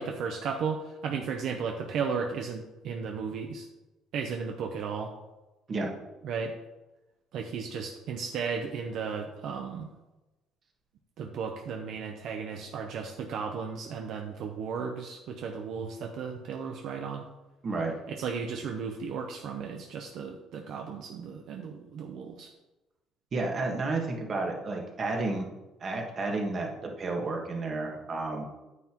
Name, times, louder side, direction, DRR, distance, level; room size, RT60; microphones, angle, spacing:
voice 1, 0.0-3.7 4.1-5.1 6.2-6.5 7.3-9.9 11.2-17.2 18.1-22.5, right 6 dB, 55° right, 3 dB, 0.7 m, -35 dB
voice 2, 17.6-17.9 23.3-25.5 25.8-28.4, right 3 dB, 30° right, 1 dB, 1.5 m, -31 dB
9.6 x 9.4 x 3.0 m, 1.1 s
cardioid pair, 175°, 0 cm